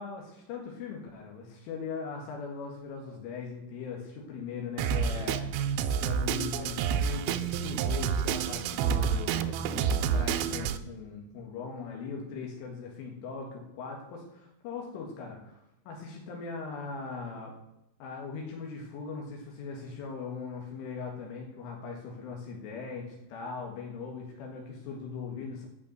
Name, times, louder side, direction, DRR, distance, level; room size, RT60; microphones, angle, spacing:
voice 1, 0.0-15.6 15.9-17.6 18.0-25.7, left 5 dB, 85° left, 0 dB, 4.3 m, -40 dB
Drum kit, 4.8-10.8, right 7 dB, 80° right, 2.9 m, -29 dB
9.5 x 6.9 x 9.1 m, 0.82 s
omnidirectional pair, 5.5 m